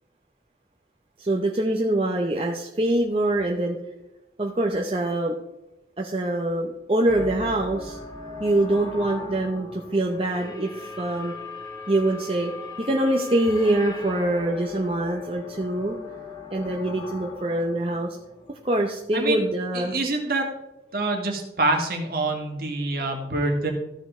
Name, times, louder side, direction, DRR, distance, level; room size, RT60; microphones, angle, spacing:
voice 1, 1.2-3.8 4.4-5.4 6.0-8.0 8.4-11.3 11.9-12.5 12.8-16.0 16.5-18.2 18.5-20.0, right 1 dB, 30° right, 0 dB, 0.8 m, -24 dB
sound 1, 7.1-19.2, left 3 dB, 20° left, 1.9 m, -39 dB
voice 2, 19.1-19.5 19.7-20.5 20.9-23.7, right 2 dB, 55° right, 2 dB, 1.8 m, -26 dB
14.0 x 5.2 x 3.7 m, 0.94 s
head